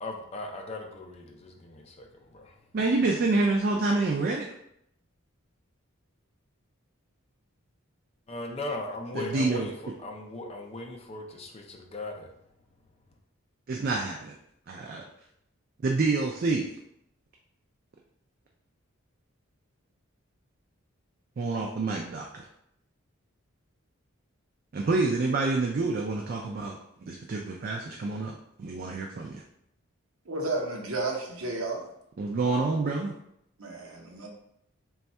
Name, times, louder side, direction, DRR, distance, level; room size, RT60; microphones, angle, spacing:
voice 1, 0.0-2.5 8.3-9.7 10.0-12.3, left 2 dB, 30° left, 2 dB, 0.4 m, -38 dB
voice 2, 2.7-4.5 9.1-9.7 13.7-14.3 14.7-15.0 15.8-16.7 21.4-22.5 24.7-26.8 27.1-29.4 32.2-33.1, right 3 dB, 45° right, 0 dB, 0.4 m, -27 dB
voice 3, 30.3-31.9 33.6-34.3, right 2 dB, 75° right, 0 dB, 0.8 m, -32 dB
3.4 x 2.3 x 4.1 m, 0.75 s
head